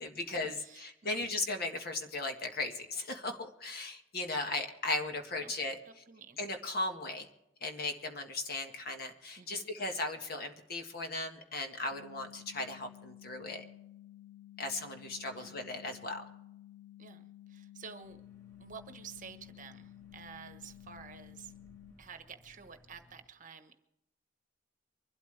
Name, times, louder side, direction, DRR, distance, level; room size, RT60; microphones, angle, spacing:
voice 1, 0.0-6.0 6.4-7.3 7.6-13.6 14.6-16.2, left 2 dB, 50° left, 4 dB, 1.7 m, -37 dB
voice 2, 0.6-1.2 5.4-5.5 5.8-6.4 9.4-9.7 15.3-15.5 17.0-18.2 18.6-21.5 22.0-23.8, right 6 dB, 40° right, 8 dB, 1.2 m, -50 dB
sound 1, 11.9-21.9, left 13 dB, 75° left, 1.8 m, -54 dB
sound 2, 18.0-23.2, left 2 dB, 20° left, 2.9 m, -62 dB
24.0 x 12.5 x 3.4 m, 0.87 s
head